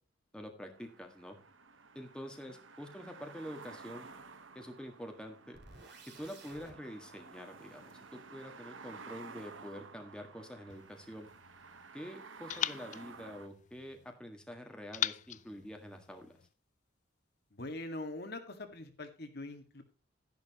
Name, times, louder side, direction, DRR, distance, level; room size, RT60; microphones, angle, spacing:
voice 1, 0.3-1.4 1.9-4.1 4.5-5.6 6.0-11.3 11.9-16.4, equal, 5° left, 3 dB, 1.7 m, -46 dB
sound 1, 0.7-13.5, right 4 dB, 85° right, 1.2 m, -53 dB
sound 2, 5.5-6.7, right 3 dB, 60° right, 4.2 m, -54 dB
sound 3, 10.7-11.9 12.5-14.1 14.9-16.5, left 10 dB, 40° left, 0.4 m, -41 dB
voice 2, 17.5-19.8, left 2 dB, 55° left, 6 dB, 1.8 m, -43 dB
11.5 x 10.5 x 2.9 m, 0.36 s
head